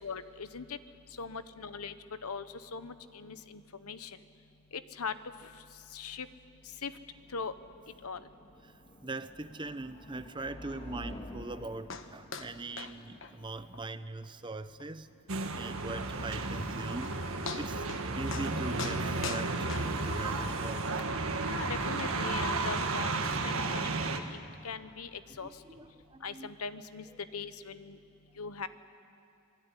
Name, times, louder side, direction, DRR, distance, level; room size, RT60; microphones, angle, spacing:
voice 1, 0.0-0.8 1.2-1.9 2.2-4.2 4.7-5.1 5.9-6.3 6.8-6.9 7.3-7.5 8.0-8.2 21.5-23.9 24.3-24.4 24.6-25.5 26.2-27.1 27.3-28.0 28.4-28.7, left 5 dB, 85° left, 12 dB, 1.1 m, -40 dB
sound 1, 6.5-15.4, equal, 25° left, 1.8 m, -50 dB
voice 2, 9.0-15.1 15.5-17.1 17.5-17.9 18.1-21.0 25.3-26.5, right 2 dB, 20° right, 12 dB, 0.7 m, -41 dB
sound 2, 11.9-12.1 12.3-12.5 12.8-12.9 13.2-13.3 13.7-13.8 14.2-14.3 14.8-14.9 16.6-16.7 17.0-17.2 17.5-18.0 18.3-18.5 18.8-20.3 21.0-21.1, left 5 dB, 60° left, 1.3 m, -40 dB
sound 3, 15.3-24.2, right 3 dB, 70° right, 1.7 m, -33 dB
26.0 x 21.0 x 10.0 m, 2.7 s
head